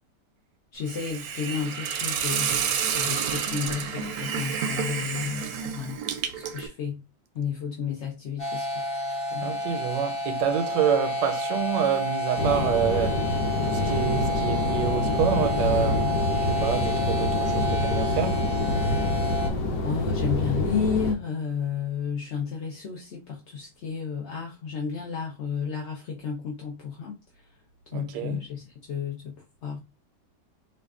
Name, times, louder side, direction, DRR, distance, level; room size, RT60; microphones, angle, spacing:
voice 1, 0.7-2.5 2.9-5.5 5.8-6.0 6.3-7.0 7.3-9.5 19.8-27.2 27.9-29.8, left 6 dB, 60° left, 0.7 m, -32 dB
Hiss, 0.9-6.7, right 7 dB, 70° right, 1.0 m, -29 dB
sound 1, 8.4-19.5, equal, 40° left, 1.0 m, -30 dB
voice 2, 9.4-13.3 13.6-16.1 16.5-18.5 27.9-28.4, right 8 dB, 85° right, 1.3 m, -27 dB
sound 2, 12.4-21.1, left 2 dB, 85° left, 1.4 m, -26 dB
4.8 x 2.5 x 2.4 m
omnidirectional pair, 1.9 m